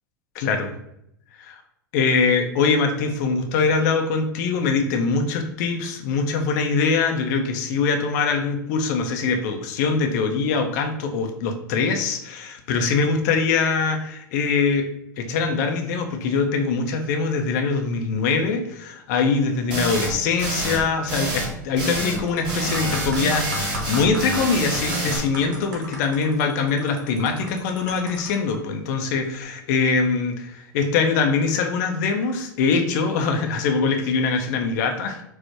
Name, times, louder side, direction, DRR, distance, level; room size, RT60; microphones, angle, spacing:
voice 1, 0.3-0.7 1.4-1.6 1.9-14.9 15.2-35.2, left 4 dB, 60° left, 4 dB, 0.6 m, -23 dB
sound 1, 19.7-20.1 20.4-20.8 21.1-21.5 21.8-22.2 22.4-25.2, right 2 dB, 50° right, 1.4 m, -27 dB
sound 2, 21.7-21.8 22.2-28.6 29.3-29.4, right 1 dB, 70° right, 1.0 m, -38 dB
4.7 x 2.0 x 2.8 m, 0.76 s
hypercardioid pair, 90°, 11 cm